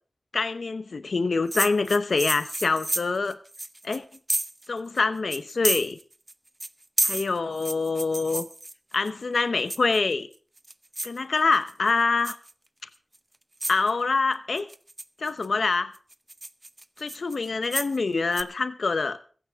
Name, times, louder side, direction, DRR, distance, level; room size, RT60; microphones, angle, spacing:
voice 1, 0.3-3.4 3.8-4.0 4.7-6.0 7.0-8.5 8.9-10.3 11.0-12.3 13.7-14.7 15.2-15.9 17.0-19.2, left 4 dB, 80° left, 12 dB, 0.8 m, -25 dB
sound 1, 1.5-4.7 5.0-5.1 5.3-6.3 6.6-9.1 9.7-10.1 10.6-11.2 11.5-11.9 12.2-12.5 13.1-13.2 13.6-13.9 14.6-15.5 15.9-18.0 18.3-18.4, right 1 dB, 30° right, 0.7 m, -30 dB
16.0 x 14.5 x 3.5 m, 0.40 s
cardioid pair, 45°, 0 cm